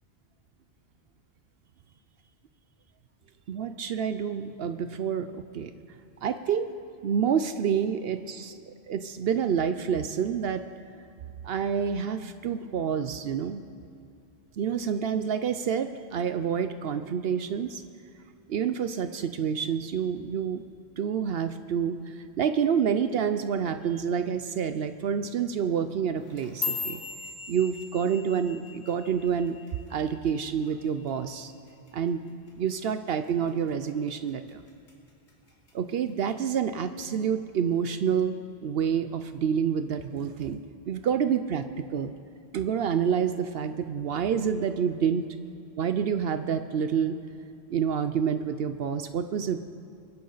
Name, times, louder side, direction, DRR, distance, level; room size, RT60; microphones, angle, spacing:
voice 1, 3.5-5.7 6.2-6.7 7.0-10.6 11.4-13.6 14.6-17.8 18.5-20.6 21.0-27.0 27.5-29.6 29.9-31.5 31.9-32.2 32.5-34.6 35.7-38.4 38.6-40.6 40.9-42.1 42.5-45.3 45.8-47.2 47.7-49.6, right 7 dB, 65° right, 10 dB, 0.8 m, -28 dB
sound 1, 26.2-30.6 30.9-31.3 31.7-32.1 32.5-32.7 33.3-33.7 34.1-34.9 35.3-35.7 36.5-36.6, left 4 dB, 80° left, 2.7 m, -38 dB
23.5 x 10.5 x 3.9 m, 2.6 s
omnidirectional pair, 1.1 m